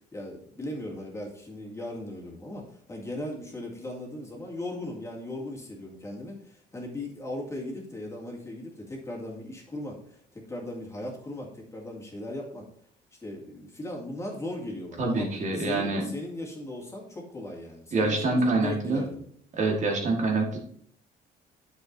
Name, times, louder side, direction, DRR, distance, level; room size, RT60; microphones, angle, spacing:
voice 1, 0.1-12.6 13.2-19.3 20.0-20.1, left 1 dB, 15° left, -2 dB, 2.2 m, -38 dB
voice 2, 15.0-16.0 17.9-19.0 19.6-20.6, right 3 dB, 45° right, 1 dB, 1.6 m, -26 dB
8.7 x 7.1 x 2.7 m, 0.62 s
cardioid pair, 110°, 17 cm